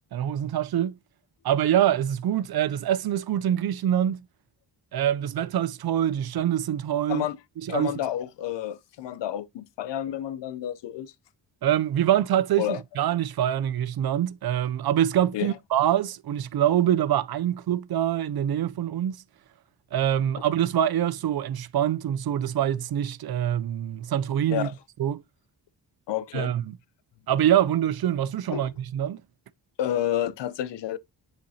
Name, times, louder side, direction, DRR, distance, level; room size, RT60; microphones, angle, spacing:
voice 1, 0.1-1.0 1.4-4.3 4.9-7.3 7.7-7.9 11.6-19.2 19.9-24.7 25.0-25.2 26.3-26.6 27.3-29.2, right 11 dB, 60° right, 0.5 m, -25 dB
voice 2, 7.7-11.1 12.6-12.8 15.3-15.5 24.5-24.7 26.1-26.5 28.5-28.6 29.8-31.0, left 11 dB, 80° left, 0.6 m, -30 dB
7.1 x 4.9 x 2.7 m
cardioid pair, 85°, 43 cm